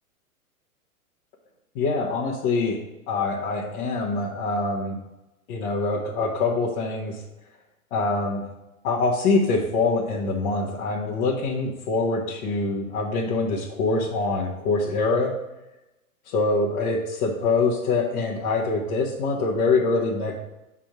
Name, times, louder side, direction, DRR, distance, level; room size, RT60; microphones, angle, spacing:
voice 1, 1.7-2.8 3.1-5.0 5.5-7.2 7.9-8.4 8.8-15.3 16.3-20.3, left 3 dB, 40° left, -6 dB, 1.4 m, -24 dB
7.5 x 3.6 x 5.9 m, 0.96 s
hypercardioid pair, 110°, 44 cm